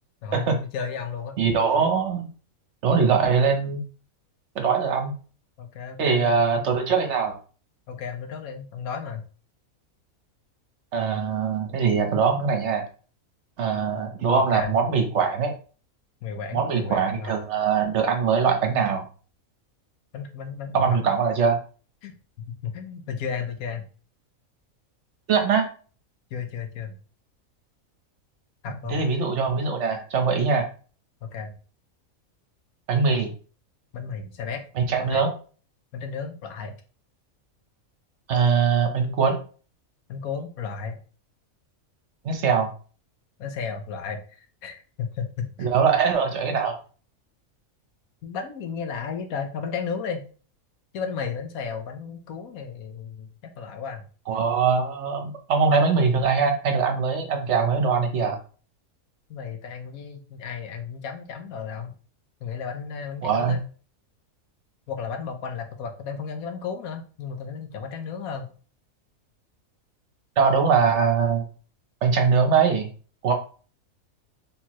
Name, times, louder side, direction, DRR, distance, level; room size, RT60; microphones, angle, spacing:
voice 1, 0.2-1.4 5.6-6.7 7.9-9.2 14.3-14.7 16.2-17.4 20.1-21.0 22.0-23.9 26.3-27.0 28.6-29.0 31.2-31.5 33.9-34.6 35.0-35.2 35.9-36.7 40.1-41.0 43.4-45.7 48.2-50.2 50.9-54.0 59.3-62.0 62.4-63.6 64.9-68.5, left 6 dB, 90° left, 6 dB, 1.2 m, -34 dB
voice 2, 1.4-2.3 2.8-3.8 4.5-5.1 6.0-7.4 10.9-12.8 13.6-15.5 16.5-19.0 20.7-21.6 25.3-25.7 28.9-30.7 32.9-33.3 34.8-35.3 38.3-39.4 42.2-42.7 45.6-46.8 54.3-58.4 63.2-63.6 70.4-71.4 72.0-72.9 73.2-73.3, right 5 dB, 60° right, 5 dB, 1.0 m, -22 dB
4.4 x 3.5 x 2.9 m, 0.40 s
omnidirectional pair, 1.5 m